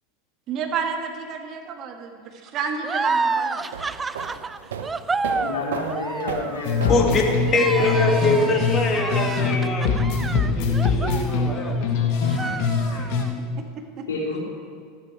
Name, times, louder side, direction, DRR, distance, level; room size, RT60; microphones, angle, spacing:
voice 1, 0.5-4.0 13.6-14.0, right 6 dB, 45° right, 4 dB, 1.5 m, -31 dB
sound 1, 2.8-11.9 12.3-13.3, right 4 dB, 15° right, 0.4 m, -30 dB
sound 2, 3.6-8.4, right 7 dB, 70° right, 0.9 m, -35 dB
voice 2, 5.2-7.0 7.7-8.6 14.1-14.4, left 2 dB, 75° left, -4 dB, 3.7 m, -29 dB
sound 3, 6.6-9.6 9.8-13.2, left 5 dB, 55° left, 1.7 m, -23 dB
voice 3, 6.9-7.2 7.5-10.0 10.3-12.1, left 2 dB, 30° left, 1 dB, 2.3 m, -23 dB
14.0 x 10.5 x 4.7 m, 2.2 s
hypercardioid pair, 85°, 0 cm